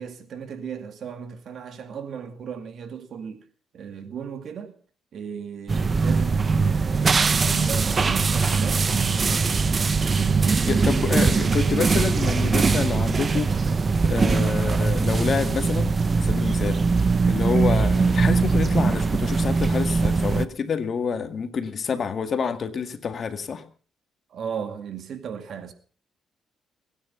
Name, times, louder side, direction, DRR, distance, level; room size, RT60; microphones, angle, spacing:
voice 1, 0.0-3.5 3.7-4.8 5.1-9.5 10.1-11.0 21.1-21.2 24.3-25.7, right 7 dB, 65° right, 2.2 m, -36 dB
sound 1, 5.7-20.4, right 4 dB, 35° right, 0.8 m, -21 dB
voice 2, 10.6-13.5 14.0-16.8 17.3-23.6, left 6 dB, 50° left, 1.9 m, -28 dB
23.0 x 9.9 x 5.7 m
cardioid pair, 90°, 0 cm